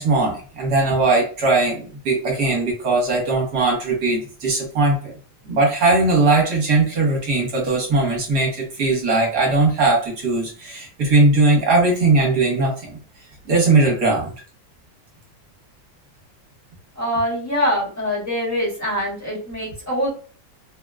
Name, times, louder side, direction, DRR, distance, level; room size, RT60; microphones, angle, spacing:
voice 1, 0.0-5.0 5.4-12.7 13.5-14.3, right 3 dB, 60° right, -1 dB, 1.4 m, -19 dB
voice 2, 17.0-20.1, equal, 10° left, -4 dB, 0.9 m, -24 dB
3.7 x 2.1 x 2.3 m, 0.39 s
omnidirectional pair, 2.2 m